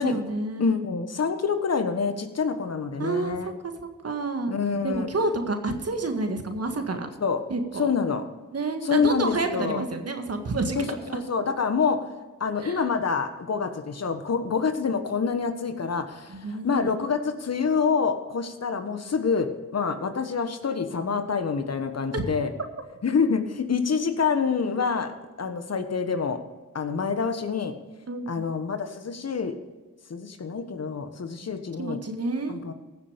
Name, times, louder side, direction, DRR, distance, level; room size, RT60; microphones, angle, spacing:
voice 1, 0.0-0.8 3.0-4.5 4.8-7.1 7.5-7.9 8.5-10.9 12.6-12.8 16.3-16.8 22.1-22.2 28.1-28.5 31.4-32.6, right 3 dB, 50° right, 6 dB, 1.9 m, -29 dB
voice 2, 0.6-3.5 4.5-5.1 7.2-7.4 7.8-8.2 8.8-9.8 10.7-12.0 12.4-22.5 23.0-25.1 25.4-26.4 26.7-27.7 28.3-29.5 30.1-32.0 32.5-32.7, left 5 dB, 50° left, 8 dB, 1.4 m, -26 dB
15.5 x 7.2 x 5.2 m, 1.3 s
supercardioid pair, 45°, 32 cm